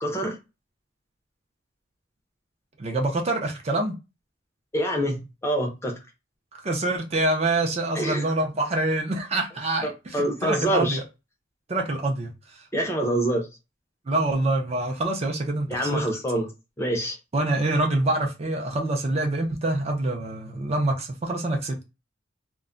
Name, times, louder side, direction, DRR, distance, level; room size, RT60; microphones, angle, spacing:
voice 1, 0.0-0.4 4.7-6.0 7.9-8.3 9.8-11.0 12.7-13.5 15.7-16.5 16.8-17.2, right 1 dB, 15° left, 0.5 m, -26 dB
voice 2, 2.8-3.9 6.6-11.0 11.7-12.7 14.1-16.1 17.3-21.8, right 2 dB, 35° right, 0.5 m, -26 dB
2.2 x 2.1 x 3.6 m
head